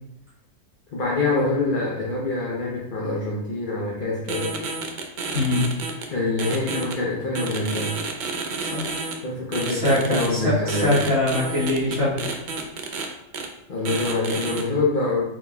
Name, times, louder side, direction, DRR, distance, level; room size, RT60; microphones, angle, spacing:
voice 1, 0.9-4.6 6.1-8.0 9.2-10.9 13.7-15.2, left 2 dB, 45° left, -5 dB, 0.8 m, -25 dB
sound 1, 4.3-6.1 6.4-6.9 7.3-9.1 9.5-10.3 10.7-13.1 13.3-13.5 13.8-14.6, right 4 dB, 65° right, 0.4 m, -30 dB
voice 2, 5.3-5.6 8.6-9.0 9.7-12.3, left 2 dB, 5° right, -11 dB, 1.3 m, -23 dB
4.3 x 4.0 x 2.2 m, 0.87 s
omnidirectional pair, 1.4 m